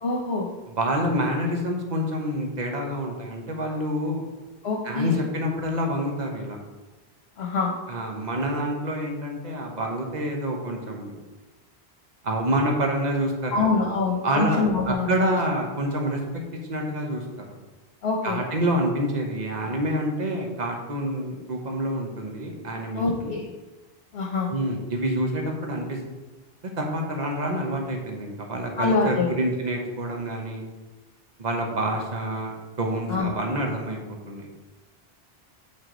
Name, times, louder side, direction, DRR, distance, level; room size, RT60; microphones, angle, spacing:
voice 1, 0.0-0.5 4.6-5.1 7.4-7.7 13.5-15.2 18.0-18.4 23.0-23.5 24.1-24.5 28.8-29.3 33.1-33.3, left 3 dB, 75° left, 0 dB, 1.1 m, -25 dB
voice 2, 0.7-4.2 4.8-6.6 7.9-11.1 12.2-13.9 14.2-16.4 16.7-17.5 18.2-23.3 24.5-26.0 26.8-30.6 31.4-34.0 34.2-34.5, right 1 dB, 45° right, 1 dB, 1.2 m, -27 dB
7.4 x 4.7 x 3.9 m, 1.2 s
omnidirectional pair, 1.1 m